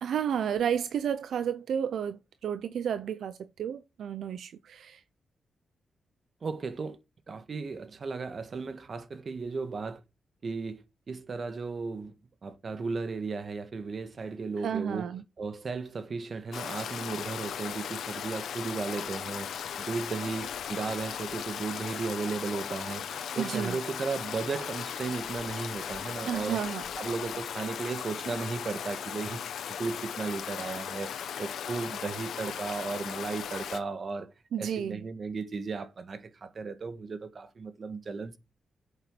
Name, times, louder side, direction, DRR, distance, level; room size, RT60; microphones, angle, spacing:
voice 1, 0.0-5.0 14.6-15.2 23.4-23.8 26.3-26.8 34.5-35.0, right 8 dB, 80° right, 0.7 m, -32 dB
voice 2, 6.4-7.0 7.3-10.0 10.4-12.1 12.4-15.1 15.4-26.6 27.0-29.4 29.7-34.3 34.6-38.4, right 4 dB, 50° right, 1.6 m, -35 dB
Stream, 16.5-33.8, left 8 dB, 85° left, 1.3 m, -37 dB
9.2 x 8.2 x 6.1 m
cardioid pair, 80°, 0 cm